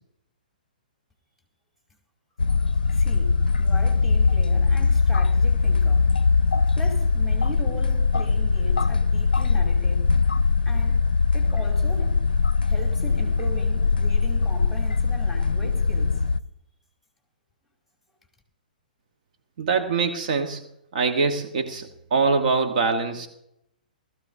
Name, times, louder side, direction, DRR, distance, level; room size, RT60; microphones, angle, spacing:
sound 1, 2.4-16.4, left 4 dB, 85° left, 0.4 m, -21 dB
voice 1, 2.7-6.1 6.8-10.1 10.7-11.0 11.3-12.2 12.6-16.2, right 1 dB, ahead, 2.5 m, -39 dB
voice 2, 19.6-20.6 20.9-23.3, right 4 dB, 55° right, 1.2 m, -23 dB
19.0 x 13.5 x 2.7 m
figure-of-eight pair, 120°, 5 cm